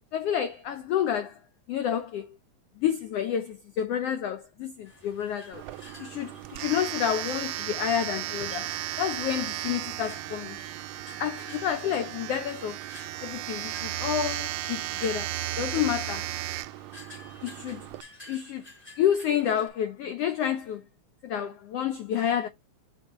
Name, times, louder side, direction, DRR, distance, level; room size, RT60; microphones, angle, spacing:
voice 1, 0.1-1.4 1.7-2.3 2.8-5.6 6.0-8.7 9.0-10.6 11.2-12.8 13.2-15.3 15.6-16.3 17.4-17.9 18.3-18.6 19.0-20.8 21.2-22.5, left 9 dB, 85° left, 1.3 m, -29 dB
sound 1, 4.8-19.7, left 1 dB, 15° left, 1.9 m, -52 dB
Domestic sounds home sounds, 5.5-18.0, right 15 dB, 90° right, 1.4 m, -35 dB
6.3 x 6.2 x 3.0 m
omnidirectional pair, 3.5 m